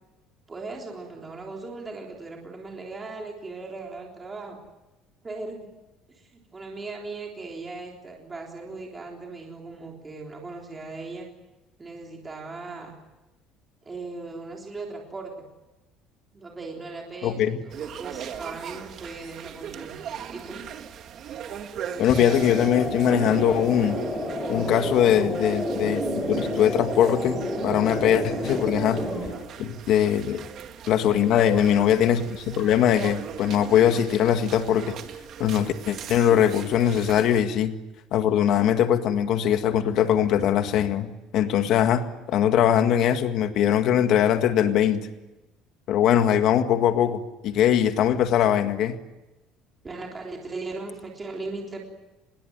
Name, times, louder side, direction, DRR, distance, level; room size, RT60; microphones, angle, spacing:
voice 1, 0.5-4.6 5.2-5.7 6.1-11.3 11.8-12.9 13.8-15.3 16.3-20.0 20.3-20.7 28.5-28.7 29.3-29.4 30.3-30.6 31.4-31.8 49.8-51.8, right 3 dB, 15° right, 0 dB, 3.6 m, -38 dB
voice 2, 17.2-17.6 22.0-24.0 24.5-26.0 26.3-29.0 29.6-30.5 30.9-35.0 35.4-37.7 38.1-45.1 45.9-49.0, left 10 dB, 50° left, 8 dB, 1.8 m, -21 dB
sound 1, 17.7-37.4, right 8 dB, 40° right, 1.8 m, -39 dB
sound 2, 22.1-29.3, equal, 5° left, 4.7 m, -29 dB
26.5 x 21.0 x 9.4 m, 1.0 s
cardioid pair, 180°, 0 cm